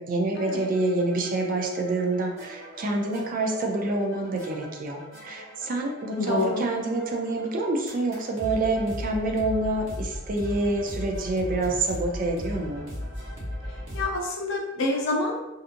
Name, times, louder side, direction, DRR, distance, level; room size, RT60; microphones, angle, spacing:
voice 1, 0.0-12.9, right 2 dB, 45° right, 1 dB, 0.4 m, -27 dB
sound 1, 0.5-14.1, equal, 80° right, 1.0 m, -38 dB
voice 2, 6.2-6.6 13.9-15.4, left 2 dB, 75° left, 0 dB, 0.6 m, -27 dB
2.7 x 2.5 x 2.5 m, 0.99 s
head